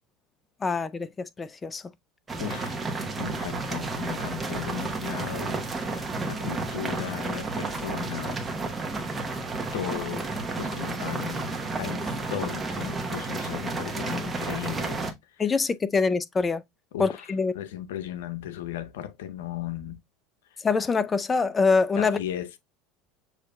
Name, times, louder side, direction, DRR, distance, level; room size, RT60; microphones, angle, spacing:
voice 1, 0.6-1.8 15.4-16.6 17.0-17.5 20.6-22.2, left 4 dB, 20° left, 0.5 m, -24 dB
sound 1, 2.3-15.1, right 3 dB, 20° right, 0.9 m, -31 dB
voice 2, 2.4-2.7 3.2-8.4 9.7-10.3 10.6-15.1 16.9-17.3 17.5-20.0 22.0-22.6, left 11 dB, 85° left, 0.6 m, -36 dB
6.5 x 2.7 x 2.2 m
supercardioid pair, 100°, 0 cm